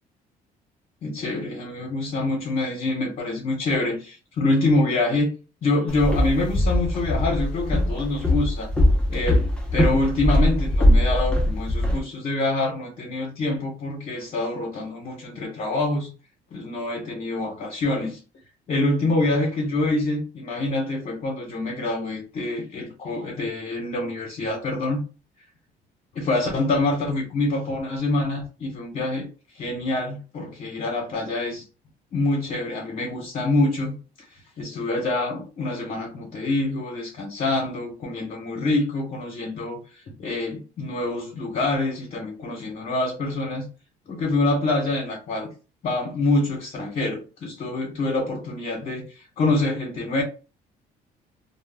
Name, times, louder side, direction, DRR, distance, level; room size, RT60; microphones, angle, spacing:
voice 1, 1.0-5.3 5.6-8.7 9.1-9.4 9.7-16.1 16.5-18.2 18.7-25.0 26.1-29.3 29.5-31.6 32.1-34.3 34.6-43.7 44.1-45.5 45.8-50.2, left 2 dB, 50° left, 0.9 m, -26 dB
Walk footsteps, 5.9-12.0, left 1 dB, 5° left, 0.6 m, -21 dB
2.2 x 2.1 x 3.3 m
cardioid pair, 110°, 17 cm